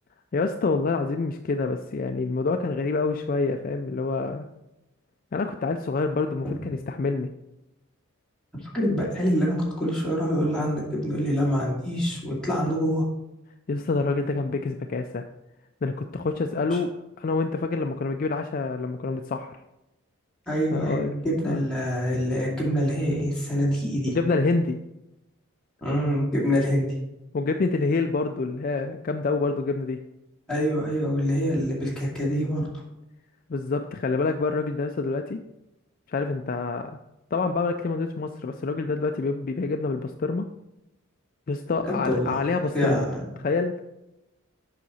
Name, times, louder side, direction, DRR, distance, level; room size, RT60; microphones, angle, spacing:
voice 1, 0.3-4.4 5.3-7.3 13.7-15.2 15.8-16.9 17.2-19.6 20.7-21.1 21.5-21.6 24.1-24.8 27.3-30.0 33.5-35.4 36.1-37.0 37.3-40.5 41.5-43.1 43.4-43.8, left 3 dB, 40° left, 6 dB, 0.3 m, -27 dB
voice 2, 8.6-13.0 16.7-16.8 20.5-24.1 25.8-26.9 30.5-32.6 41.8-42.4 42.7-43.2, equal, 5° left, -7 dB, 2.4 m, -25 dB
7.5 x 5.6 x 4.1 m, 0.93 s
head